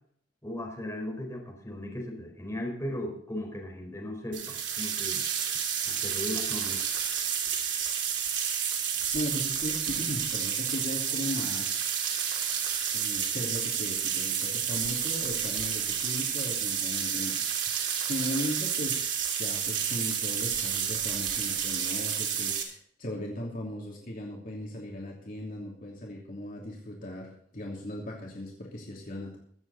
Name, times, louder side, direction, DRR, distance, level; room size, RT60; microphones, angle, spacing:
voice 1, 0.4-5.3 5.8-6.8, left 1 dB, 15° left, -1 dB, 4.6 m, -37 dB
sound 1, 4.3-22.6, right 8 dB, 85° right, 2.9 m, -30 dB
voice 2, 9.1-11.7 12.9-17.4 17.7-29.4, left 1 dB, 50° left, -2 dB, 2.8 m, -37 dB
23.5 x 8.1 x 4.1 m, 0.63 s
head